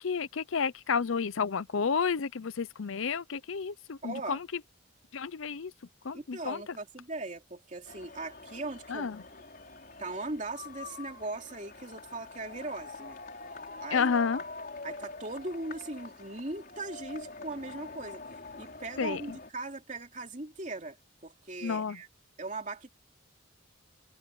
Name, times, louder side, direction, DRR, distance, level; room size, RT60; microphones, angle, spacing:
voice 1, 0.0-4.6 5.1-5.7 6.0-6.8 8.9-9.2 13.9-14.4 19.0-19.4 21.6-22.0, left 5 dB, 80° left, 0.6 m, -31 dB
voice 2, 4.0-4.4 6.1-9.1 10.0-13.2 13.8-14.1 14.8-18.2 18.5-21.0 21.2-22.1 22.4-22.9, right 2 dB, 35° right, 3.0 m, -39 dB
sound 1, 7.9-19.5, left 3 dB, 45° left, 4.7 m, -45 dB
head